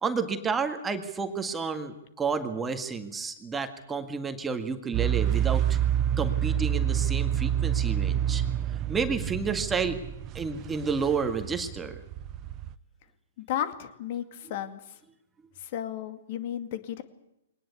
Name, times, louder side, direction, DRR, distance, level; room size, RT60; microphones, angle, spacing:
voice 1, 0.0-5.8 6.2-8.4 8.9-10.0 10.3-12.0, right 5 dB, 10° right, 6 dB, 1.9 m, -30 dB
sound 1, 4.9-12.8, right 10 dB, 30° right, 0.8 m, -28 dB
voice 2, 13.4-14.8 15.6-17.0, left 10 dB, 45° left, 10 dB, 2.3 m, -33 dB
23.5 x 19.0 x 8.5 m, 0.85 s
figure-of-eight pair, 115°, 0 cm